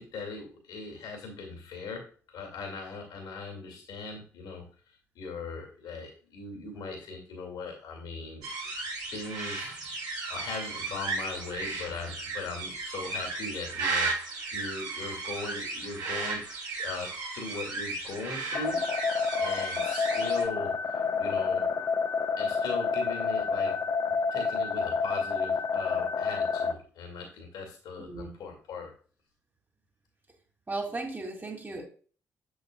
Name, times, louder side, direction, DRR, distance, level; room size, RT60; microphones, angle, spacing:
voice 1, 0.0-2.0 2.3-4.6 5.2-8.5 9.1-9.7 10.3-16.4 16.8-18.8 19.4-20.8 21.2-21.7 22.4-23.8 24.0-28.9, left 3 dB, 60° left, 2.2 m, -39 dB
sound 1, 8.4-20.5, right 3 dB, 65° right, 3.7 m, -35 dB
sound 2, 18.5-26.7, left 5 dB, 45° left, 0.9 m, -29 dB
voice 2, 28.0-28.3 30.7-31.9, right 2 dB, 25° right, 2.6 m, -36 dB
8.0 x 8.0 x 2.3 m
figure-of-eight pair, 40°, 8 cm